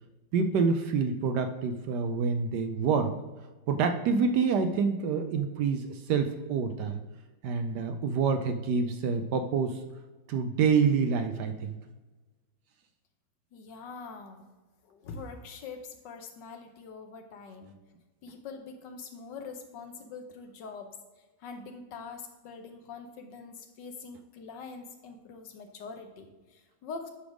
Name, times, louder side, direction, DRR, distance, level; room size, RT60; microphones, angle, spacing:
voice 1, 0.3-3.2 3.7-7.0 7.4-9.8 10.3-11.8, right 5 dB, 70° right, 8 dB, 1.0 m, -27 dB
voice 2, 13.5-14.4 14.8-17.7 18.2-20.9 21.4-27.1, left 4 dB, 65° left, 6 dB, 1.3 m, -44 dB
9.9 x 3.5 x 6.1 m, 1.2 s
omnidirectional pair, 2.2 m